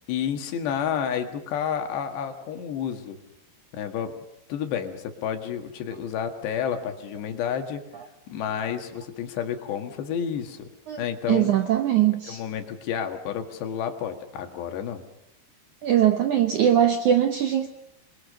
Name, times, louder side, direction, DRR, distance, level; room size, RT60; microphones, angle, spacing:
voice 1, 0.1-3.2 3.7-4.2 4.5-7.8 8.3-10.7 11.0-11.5 12.3-15.0, left 8 dB, 80° left, 6 dB, 3.9 m, -30 dB
voice 2, 10.9-12.4 15.8-17.7, right 10 dB, 75° right, 7 dB, 1.8 m, -21 dB
28.0 x 22.0 x 6.6 m, 0.78 s
omnidirectional pair, 4.9 m